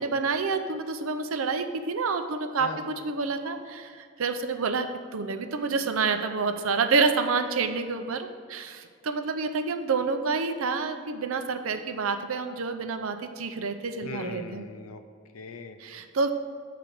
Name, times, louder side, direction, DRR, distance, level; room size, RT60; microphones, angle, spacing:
voice 1, 0.0-2.7 3.0-14.6 15.8-16.3, right 4 dB, 80° right, 7 dB, 0.6 m, -28 dB
voice 2, 2.6-2.9 14.0-15.0 15.3-15.8, left 4 dB, 90° left, 8 dB, 0.6 m, -39 dB
6.6 x 5.1 x 6.0 m, 2.2 s
head